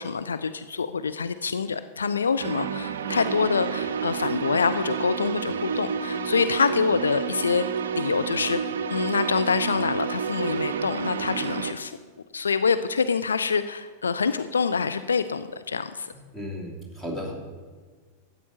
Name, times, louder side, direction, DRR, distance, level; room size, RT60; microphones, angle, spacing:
voice 1, 0.0-7.7 7.9-8.6 8.9-12.0 12.3-16.1, left 5 dB, 75° left, 11 dB, 0.4 m, -26 dB
sound 1, 2.4-11.7, right 6 dB, 65° right, 0.5 m, -30 dB
voice 2, 16.3-17.3, equal, 15° left, 0 dB, 2.8 m, -34 dB
12.5 x 8.3 x 5.4 m, 1.5 s
figure-of-eight pair, 90°, 0 cm